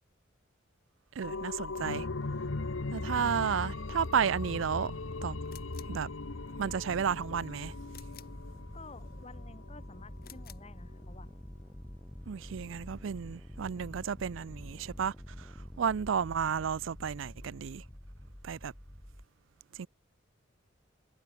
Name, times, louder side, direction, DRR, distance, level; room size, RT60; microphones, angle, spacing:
sound 1, 1.2-10.6 10.9-11.0, left 3 dB, 80° left, 1.0 m, -39 dB
voice 1, 1.2-2.1 2.9-4.9 5.2-5.4 5.9-6.1 6.6-7.7 12.3-17.8 18.4-18.7 19.7-19.9, right 7 dB, 70° right, 0.4 m, -32 dB
sound 2, 5.5-6.0 7.9-8.4 10.2-10.7, left 11 dB, 50° left, 5.7 m, -53 dB
sound 3, 5.7-19.3, equal, 5° left, 0.6 m, -48 dB
voice 2, 8.7-11.3, left 3 dB, 30° left, 1.6 m, -52 dB
head